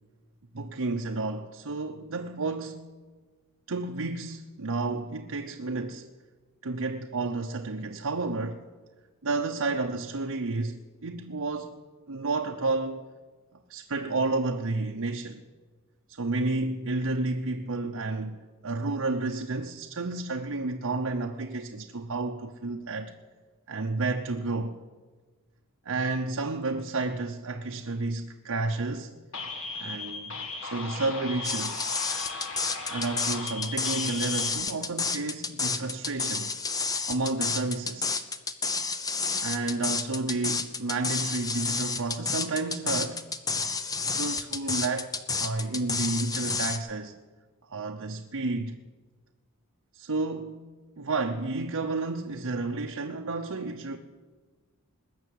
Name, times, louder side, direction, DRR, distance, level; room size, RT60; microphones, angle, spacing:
voice 1, 0.5-2.9 3.7-6.1 6.6-8.6 9.2-11.8 12.1-13.0 13.7-15.4 16.1-23.1 23.7-24.8 25.8-29.1 29.7-31.9 32.9-36.5 37.1-38.1 39.4-43.2 44.0-47.1 47.7-48.8 49.9-50.6 51.0-54.0, right 3 dB, 70° right, 0.8 m, -31 dB
sound 1, 29.3-34.5, left 3 dB, 60° left, 2.2 m, -37 dB
sound 2, 31.4-46.8, left 4 dB, 15° left, 0.7 m, -30 dB
20.5 x 6.9 x 9.4 m
head